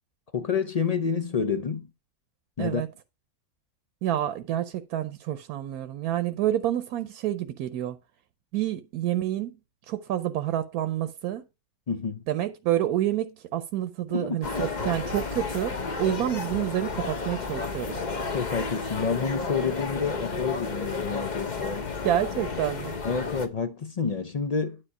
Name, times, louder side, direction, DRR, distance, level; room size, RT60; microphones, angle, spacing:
voice 1, 0.3-1.9 2.6-2.8 11.9-12.2 14.1-14.7 18.3-21.9 23.0-24.8, left 5 dB, 70° left, 0.3 m, -29 dB
voice 2, 4.0-8.0 8.5-9.6 9.9-11.4 12.3-18.0 22.0-22.9, right 12 dB, 85° right, 1.2 m, -28 dB
sound 1, 14.4-23.5, left 4 dB, 35° left, 0.9 m, -32 dB
9.9 x 4.7 x 5.3 m
omnidirectional pair, 1.6 m